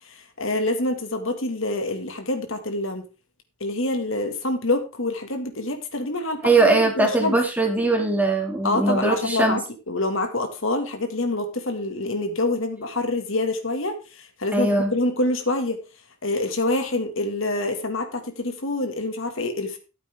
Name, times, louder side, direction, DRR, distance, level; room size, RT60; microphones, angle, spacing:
voice 1, 0.1-3.1 3.6-7.4 8.6-15.8 16.2-19.8, left 2 dB, 65° left, 6 dB, 2.0 m, -26 dB
voice 2, 6.4-9.6 14.5-14.9, right 2 dB, 5° right, 2 dB, 2.3 m, -20 dB
14.0 x 8.6 x 3.5 m, 0.32 s
head